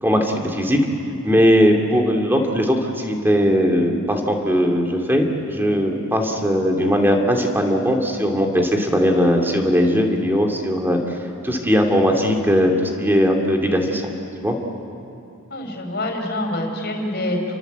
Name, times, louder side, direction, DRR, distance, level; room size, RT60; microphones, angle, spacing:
voice 1, 0.0-0.8 1.2-14.1 14.4-14.5, equal, 10° right, 1 dB, 2.7 m, -19 dB
voice 2, 15.5-17.6, left 1 dB, 45° left, 3 dB, 4.5 m, -26 dB
30.0 x 23.5 x 8.2 m, 2.8 s
head